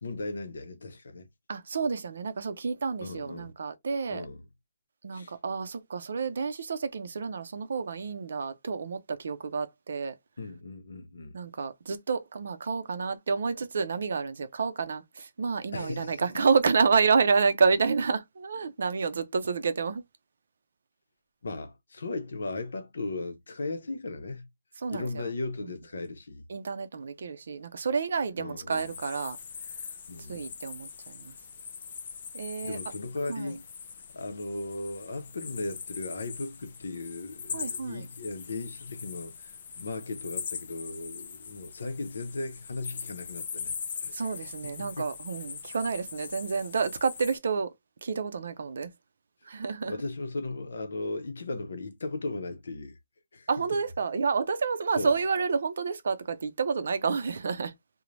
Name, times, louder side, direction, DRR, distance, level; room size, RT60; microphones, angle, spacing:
voice 1, 0.0-1.3 3.0-3.5 4.1-4.4 5.1-5.4 10.4-11.4 15.7-16.2 21.4-24.5 24.9-26.4 28.4-28.9 30.1-30.5 32.6-33.6 34.1-44.1 44.8-45.1 49.8-53.0 53.3-53.5 55.0-55.1, left 2 dB, 80° left, 0.6 m, -37 dB
voice 2, 1.5-4.2 5.0-10.1 11.3-20.0 24.8-25.2 25.6-25.7 26.5-29.4 30.3-31.3 32.3-32.8 33.3-33.6 37.5-38.1 44.1-47.7 48.0-48.9 49.5-49.9 53.5-57.7, right 5 dB, 60° right, 0.4 m, -29 dB
sound 1, 28.7-47.4, left 6 dB, 40° left, 0.4 m, -41 dB
3.1 x 2.0 x 2.5 m
hypercardioid pair, 175°, 0 cm